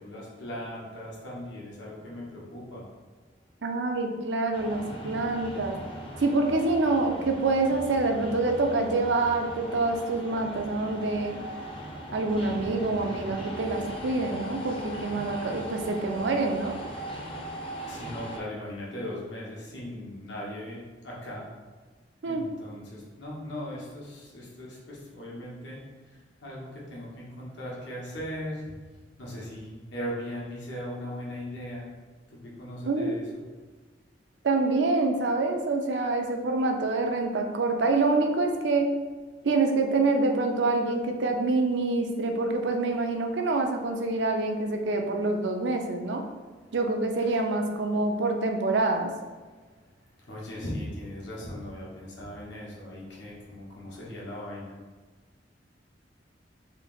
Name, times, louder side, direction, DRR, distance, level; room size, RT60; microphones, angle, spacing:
voice 1, 0.0-2.9 17.9-21.5 22.2-28.6 29.2-31.9 32.3-33.4 47.2-47.4 50.2-54.7, left 1 dB, 75° left, -4 dB, 1.1 m, -39 dB
voice 2, 3.6-5.8 6.2-11.4 12.1-16.8 22.2-22.5 32.9-33.2 34.4-39.0 39.4-46.2 46.7-49.1, right 3 dB, 80° right, 4 dB, 0.5 m, -26 dB
sound 1, 4.5-18.4, right 1 dB, 30° left, 0.6 m, -39 dB
3.2 x 2.8 x 3.9 m, 1.4 s
head